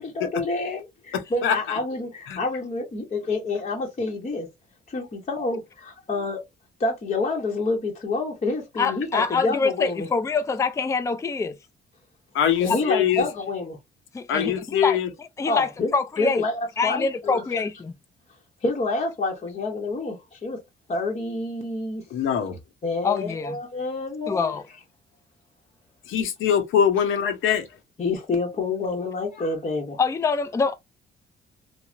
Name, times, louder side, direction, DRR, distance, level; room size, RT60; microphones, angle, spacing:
voice 1, 0.0-4.5 4.9-6.4 6.8-10.1 12.6-13.8 15.5-15.9 16.2-17.4 18.6-20.6 20.9-22.0 22.8-24.5 28.0-30.0, left 3 dB, 35° left, 0.8 m, -28 dB
voice 2, 1.1-1.8 2.3-2.4 12.3-13.3 14.3-15.1 22.1-22.6 26.0-27.8, left 8 dB, 80° left, 0.7 m, -23 dB
voice 3, 8.8-11.5 14.1-14.5 14.8-15.0 15.4-16.4 16.8-17.9 23.0-23.6 24.3-24.6 30.0-30.7, left 4 dB, 15° left, 0.4 m, -25 dB
3.1 x 2.0 x 2.4 m
cardioid pair, 90°, 20 cm